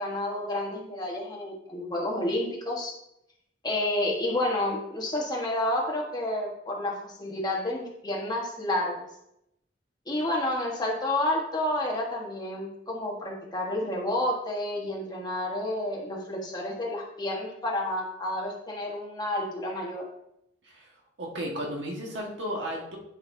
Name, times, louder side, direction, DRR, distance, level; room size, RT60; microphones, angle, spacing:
voice 1, 0.0-2.9 3.6-9.0 10.1-20.0, left 1 dB, 25° left, -2 dB, 1.5 m, -30 dB
voice 2, 21.2-23.0, equal, 70° right, -1 dB, 1.7 m, -34 dB
10.0 x 5.4 x 2.8 m, 0.80 s
head